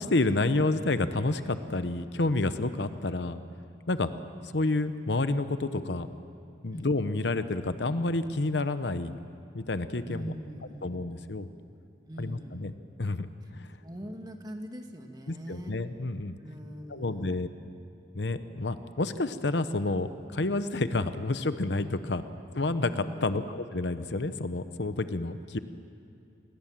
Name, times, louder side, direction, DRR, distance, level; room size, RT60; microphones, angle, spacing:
voice 1, 0.0-3.4 3.9-4.1 4.5-6.1 6.6-9.2 9.5-10.3 10.8-11.5 12.2-12.7 13.0-13.8 15.3-16.4 16.9-17.5 18.1-22.2 22.5-25.6, left 2 dB, 70° left, 11 dB, 0.9 m, -29 dB
voice 2, 10.1-11.2 12.1-12.8 13.8-15.7 16.4-17.5 21.8-22.0 22.9-23.2, equal, 20° right, 4 dB, 2.0 m, -42 dB
27.5 x 20.0 x 7.5 m, 2.8 s
head